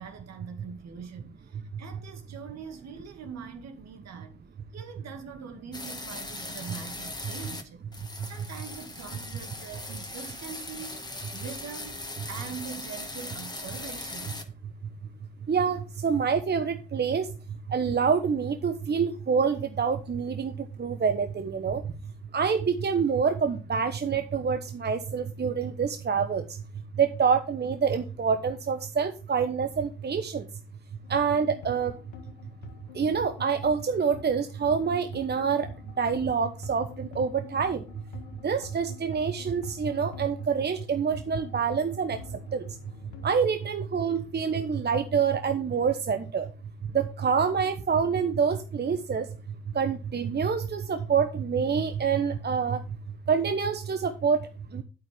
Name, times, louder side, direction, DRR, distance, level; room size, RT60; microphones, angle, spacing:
voice 1, 0.0-4.4 4.7-7.9 8.2-12.0 12.3-14.4, right 6 dB, 60° right, 2.2 m, -43 dB
sound 1, 5.7-7.6 7.9-14.4, left 2 dB, 15° left, 1.8 m, -39 dB
voice 2, 15.5-17.3 17.7-21.8 22.3-26.4 27.0-30.5 31.1-31.9 32.9-35.7 36.0-37.9 38.4-42.8 43.2-46.5 46.8-49.3 49.7-52.8 53.3-54.8, right 6 dB, 35° right, 1.0 m, -26 dB
sound 2, 31.0-43.3, left 6 dB, 85° left, 1.7 m, -48 dB
8.8 x 8.3 x 3.5 m
hypercardioid pair, 60°, 30 cm